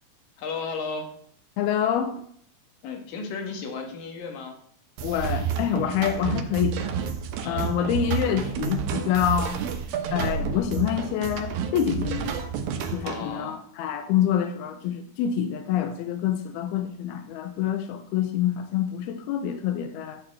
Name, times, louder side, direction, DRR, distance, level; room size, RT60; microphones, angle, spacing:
voice 1, 0.4-1.1 2.8-4.6 7.4-8.0 8.4-8.6 13.0-13.6, left 4 dB, 65° left, 3 dB, 3.2 m, -34 dB
voice 2, 1.6-2.2 5.0-6.9 7.5-9.6 10.1-12.4 12.9-20.2, left 9 dB, 90° left, 7 dB, 2.7 m, -26 dB
sound 1, 5.0-13.3, right 6 dB, 65° right, 2.1 m, -34 dB
sound 2, 5.2-13.0, right 7 dB, 85° right, 2.9 m, -31 dB
13.0 x 4.7 x 7.5 m, 0.62 s
omnidirectional pair, 4.4 m